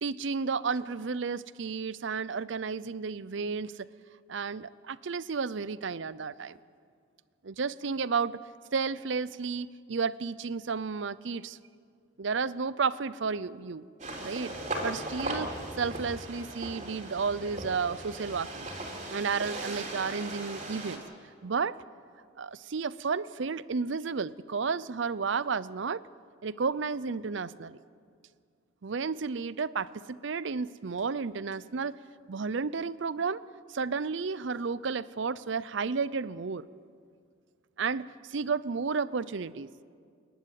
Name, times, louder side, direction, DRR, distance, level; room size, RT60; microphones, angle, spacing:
voice 1, 0.0-3.9 4.3-6.6 7.4-8.4 8.7-11.6 12.2-13.9 14.2-14.5 14.8-18.7 19.1-21.0 21.4-21.8 22.4-26.0 26.4-27.8 28.8-32.0 32.3-33.4 33.7-36.7 37.8-39.7, right 5 dB, 65° right, 18 dB, 0.5 m, -32 dB
sound 1, 14.0-21.0, right 1 dB, 35° right, 3.7 m, -38 dB
29.0 x 11.5 x 9.2 m, 2.2 s
head